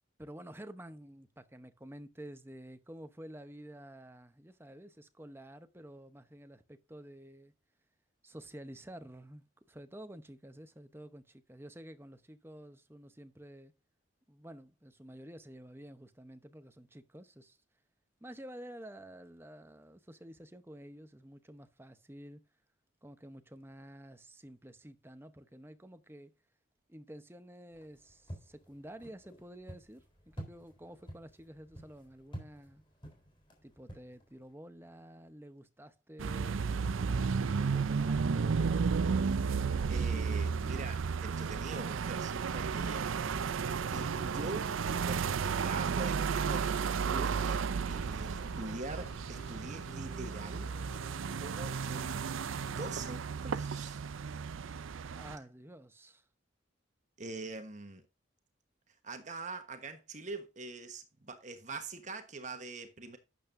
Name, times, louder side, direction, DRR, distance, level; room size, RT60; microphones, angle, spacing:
voice 1, 0.2-7.5 8.2-13.7 14.3-17.6 18.2-22.4 23.0-26.3 26.9-32.8 33.6-36.6 37.4-38.9 55.1-56.3, right 1 dB, 10° right, 0.8 m, -50 dB
sound 1, 27.7-34.5, equal, 25° left, 3.8 m, -50 dB
De rivadavia A Fonseca, 36.2-55.4, right 5 dB, 80° right, 0.5 m, -33 dB
voice 2, 39.9-43.1 43.9-44.7 45.0-46.8 47.1-50.7 51.4-52.2 52.6-54.0 57.2-58.1 58.9-63.2, right 3 dB, 35° right, 1.2 m, -44 dB
sound 2, 43.1-53.2, right 1 dB, 55° left, 2.0 m, -52 dB
12.0 x 8.9 x 2.6 m
head